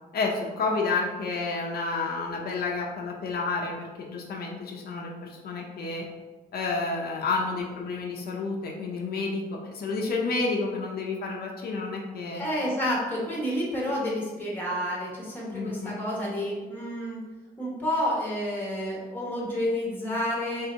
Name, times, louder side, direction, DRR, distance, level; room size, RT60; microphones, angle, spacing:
voice 1, 0.1-6.0 6.5-12.4 15.5-15.9, left 3 dB, 75° left, -1 dB, 0.6 m, -30 dB
voice 2, 12.3-17.2 17.6-20.7, equal, 10° left, -4 dB, 1.1 m, -29 dB
3.3 x 2.8 x 4.3 m, 1.2 s
wide cardioid pair, 155°, 16 cm